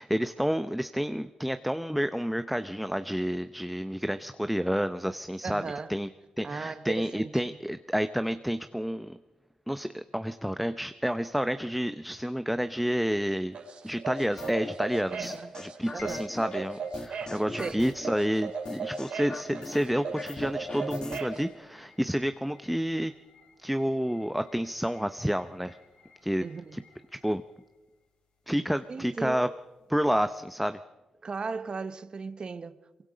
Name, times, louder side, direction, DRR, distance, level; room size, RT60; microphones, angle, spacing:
voice 1, 0.0-6.1 6.4-9.2 9.7-13.6 13.8-23.1 23.6-25.8 26.2-26.5 26.7-26.8 27.2-27.4 28.5-29.5 29.9-30.8, equal, ahead, 0.7 m, -29 dB
voice 2, 5.4-5.9 6.4-7.5 15.1-15.5 15.9-16.3 17.6-17.9 26.4-26.8 28.9-29.5 31.2-33.0, right 4 dB, 45° right, 1.0 m, -37 dB
sound 1, 13.5-21.4, right 4 dB, 70° right, 3.8 m, -37 dB
sound 2, 14.4-14.7 15.2-16.6 16.9-18.1 18.7-21.2, left 3 dB, 35° left, 1.7 m, -40 dB
sound 3, 16.0-30.5, left 5 dB, 80° left, 5.9 m, -58 dB
23.5 x 22.5 x 5.1 m
cardioid pair, 60°, 2 cm